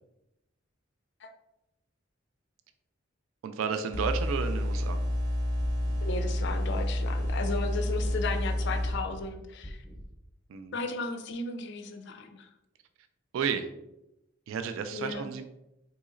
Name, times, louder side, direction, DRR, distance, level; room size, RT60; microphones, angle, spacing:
voice 1, 3.4-5.0 10.5-10.8 13.3-13.7 14.5-15.4, right 6 dB, 85° right, 8 dB, 0.3 m, -32 dB
sound 1, 3.9-8.9, left 1 dB, 65° right, 0.8 m, -29 dB
sound 2, 5.0-5.2 5.6-6.0 6.4-6.8 7.2-7.6 8.0-8.4 8.8-9.2 9.6-10.1, equal, 20° right, 0.7 m, -43 dB
voice 2, 6.0-9.8 10.7-12.5 14.9-15.3, left 3 dB, 60° left, 7 dB, 0.4 m, -35 dB
3.9 x 2.8 x 2.5 m, 0.90 s
head